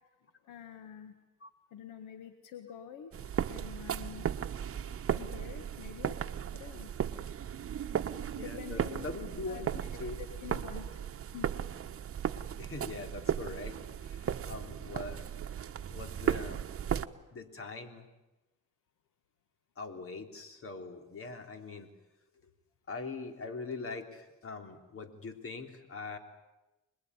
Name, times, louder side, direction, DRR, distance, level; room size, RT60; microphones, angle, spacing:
voice 1, 0.4-1.1 1.7-4.3 5.1-6.2 6.5-6.9 8.4-9.1 9.5-11.0 11.3-11.5, left 9 dB, 90° left, 7 dB, 1.9 m, -47 dB
sound 1, 3.1-17.1, right 9 dB, 50° right, 1.2 m, -36 dB
voice 2, 8.2-10.2 10.9-11.0 12.6-15.3 15.9-16.7 17.3-18.1 19.8-21.9 22.9-26.2, left 3 dB, 45° left, 6 dB, 3.7 m, -42 dB
26.5 x 21.0 x 9.9 m, 1.0 s
cardioid pair, 90°, 30 cm